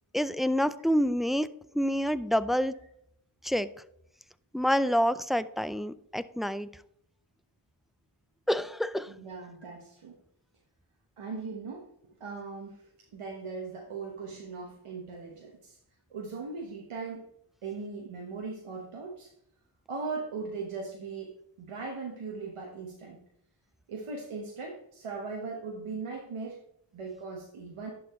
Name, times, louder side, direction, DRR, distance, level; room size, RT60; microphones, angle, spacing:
voice 1, 0.1-1.5 1.7-2.7 3.4-3.7 4.5-6.7 8.5-9.1, equal, ahead, 14 dB, 0.4 m, -27 dB
voice 2, 9.1-10.2 11.2-11.9 12.2-12.8 13.1-15.8 16.1-17.2 17.6-19.3 19.9-23.2 23.9-26.6 26.9-27.9, right 4 dB, 85° right, -1 dB, 1.3 m, -39 dB
11.0 x 4.4 x 3.1 m, 0.74 s
cardioid pair, 40°, 49 cm